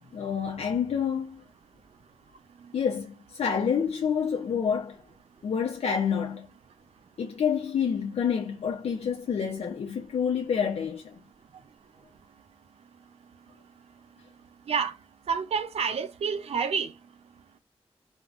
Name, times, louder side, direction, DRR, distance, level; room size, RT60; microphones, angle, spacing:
voice 1, 0.1-1.4 2.7-5.0 5.4-6.5 7.2-11.2, left 7 dB, 85° left, 0.5 m, -28 dB
voice 2, 15.3-16.9, right 6 dB, 80° right, 0.4 m, -28 dB
3.6 x 2.1 x 2.4 m
cardioid pair, 70°, 10 cm